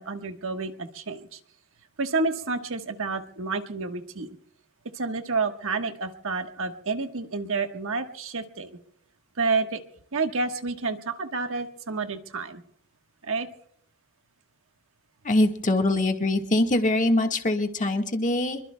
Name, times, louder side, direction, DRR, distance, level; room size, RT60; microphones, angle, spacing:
voice 1, 0.0-1.4 2.0-4.4 4.9-8.8 9.4-9.8 10.1-12.6 13.2-13.5, right 4 dB, 65° right, 6 dB, 1.3 m, -29 dB
voice 2, 15.2-18.6, left 1 dB, 35° left, 4 dB, 1.5 m, -23 dB
26.0 x 23.0 x 2.2 m, 0.63 s
head